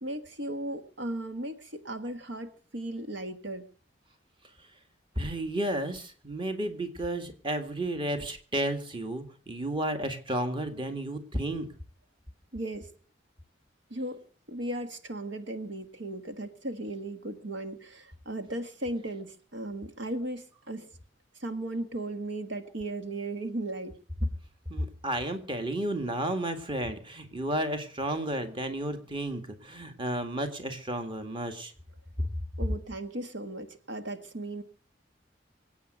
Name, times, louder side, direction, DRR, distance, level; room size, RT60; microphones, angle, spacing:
voice 1, 0.0-3.7 12.5-13.0 13.9-20.9 21.4-24.0 32.6-34.6, right 1 dB, 75° right, 8 dB, 1.6 m, -36 dB
voice 2, 5.2-11.7 24.7-31.7, right 1 dB, 25° right, 7 dB, 1.9 m, -32 dB
23.5 x 8.8 x 6.6 m, 0.43 s
head